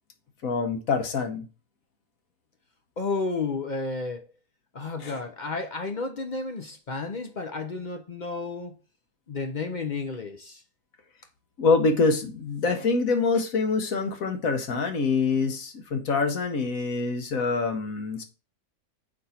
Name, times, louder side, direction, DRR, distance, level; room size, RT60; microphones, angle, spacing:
voice 1, 0.4-1.4 5.0-5.2 11.6-18.2, left 4 dB, 70° left, 1.4 m, -25 dB
voice 2, 3.0-4.2 4.7-8.7 9.3-10.6, left 3 dB, 45° left, 0.6 m, -32 dB
6.7 x 5.3 x 4.3 m
omnidirectional pair, 1.6 m